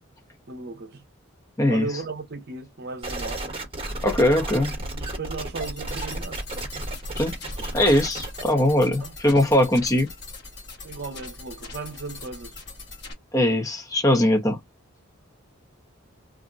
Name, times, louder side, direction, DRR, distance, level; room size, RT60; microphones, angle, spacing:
voice 1, 0.5-1.0 1.7-3.5 4.9-6.4 9.0-9.1 10.8-12.6, right 3 dB, 50° right, 0.7 m, -36 dB
voice 2, 1.6-1.9 4.0-4.7 7.1-7.3 7.6-10.1 13.3-14.6, left 1 dB, 15° left, 0.6 m, -21 dB
sound 1, 3.0-8.4, right 1 dB, 25° right, 1.0 m, -32 dB
sound 2, 5.6-13.1, left 3 dB, 50° left, 1.1 m, -41 dB
2.5 x 2.1 x 3.6 m
head